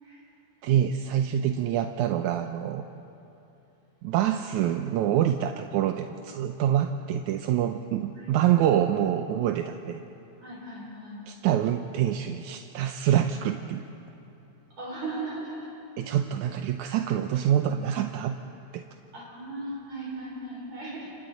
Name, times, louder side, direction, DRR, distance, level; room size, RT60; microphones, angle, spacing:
voice 1, 0.6-2.8 4.0-10.0 11.3-13.9 16.0-18.4 18.7-18.8, right 10 dB, 80° right, 7 dB, 2.0 m, -26 dB
voice 2, 8.1-8.6 10.4-11.2 14.8-15.7 19.1-21.1, right 2 dB, 60° right, -4 dB, 5.0 m, -37 dB
29.5 x 26.5 x 4.0 m, 2.8 s
omnidirectional pair, 3.5 m